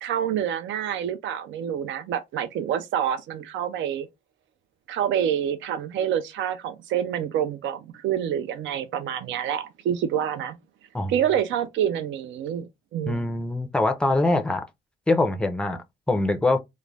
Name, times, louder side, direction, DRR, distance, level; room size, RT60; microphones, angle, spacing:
voice 1, 0.0-4.1 4.9-10.6 11.1-13.2, right 9 dB, 70° right, 0.4 m, -27 dB
voice 2, 13.1-14.6 15.1-16.6, left 2 dB, 5° left, 0.4 m, -23 dB
2.4 x 2.1 x 3.2 m
cardioid pair, 90°, 20 cm